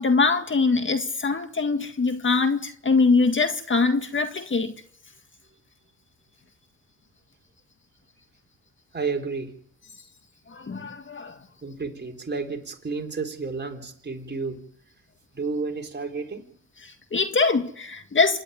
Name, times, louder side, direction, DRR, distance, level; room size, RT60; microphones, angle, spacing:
voice 1, 0.0-4.7 10.5-11.4 16.8-18.4, left 4 dB, 35° left, 2.0 m, -23 dB
voice 2, 8.9-9.5 11.6-14.6 15.3-16.4, right 4 dB, 30° right, 4.2 m, -31 dB
27.0 x 11.0 x 9.5 m
supercardioid pair, 70°, 33 cm